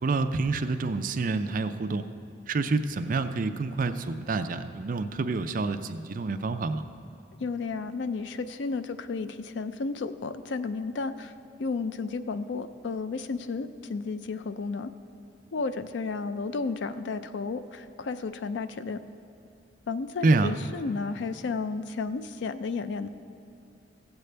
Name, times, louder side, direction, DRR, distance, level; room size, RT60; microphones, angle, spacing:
voice 1, 0.0-2.1 2.5-6.8 20.2-20.5, right 3 dB, 50° right, 9 dB, 0.4 m, -27 dB
voice 2, 7.4-11.3 11.6-14.9 15.5-19.0 19.9-23.1, left 4 dB, 75° left, 11 dB, 0.4 m, -32 dB
15.5 x 8.0 x 3.3 m, 2.8 s
head